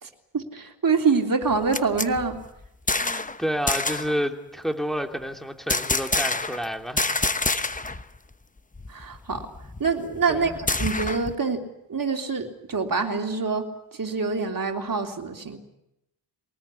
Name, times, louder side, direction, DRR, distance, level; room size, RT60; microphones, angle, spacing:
voice 1, 0.0-2.4 8.9-9.5 9.8-11.6 11.9-15.6, right 4 dB, 45° right, 4 dB, 3.3 m, -26 dB
sound 1, 1.4-3.4 3.7-4.2 5.7-6.7 7.0-8.0 8.3-8.4 8.8-11.4, left 3 dB, 15° left, 0.9 m, -27 dB
voice 2, 2.9-7.1 10.3-10.6, equal, ahead, 4 dB, 2.8 m, -30 dB
23.5 x 19.0 x 9.8 m, 0.86 s
wide cardioid pair, 100°, 47 cm